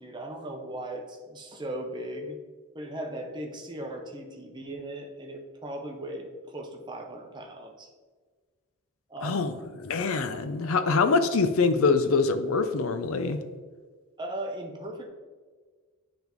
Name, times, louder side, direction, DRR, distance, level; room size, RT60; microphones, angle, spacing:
voice 1, 0.0-2.4 2.7-7.9 9.1-9.4 14.2-15.1, right 1 dB, 20° right, 2 dB, 0.7 m, -38 dB
voice 2, 9.2-13.4, left 4 dB, 65° left, 9 dB, 0.5 m, -25 dB
10.0 x 3.5 x 3.0 m, 1.5 s
head